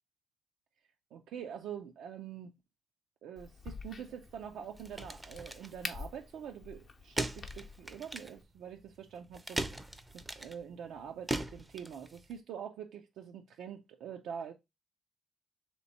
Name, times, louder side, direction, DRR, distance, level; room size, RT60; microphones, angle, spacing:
voice 1, 1.1-2.5 3.2-9.6 10.1-14.5, right 8 dB, 80° right, 0.4 m, -45 dB
Crack, 3.4-8.4, left 4 dB, 45° left, 0.6 m, -47 dB
sound 1, 3.7-12.4, right 2 dB, 15° right, 0.5 m, -41 dB
3.4 x 2.9 x 4.1 m
cardioid pair, 90°, 0 cm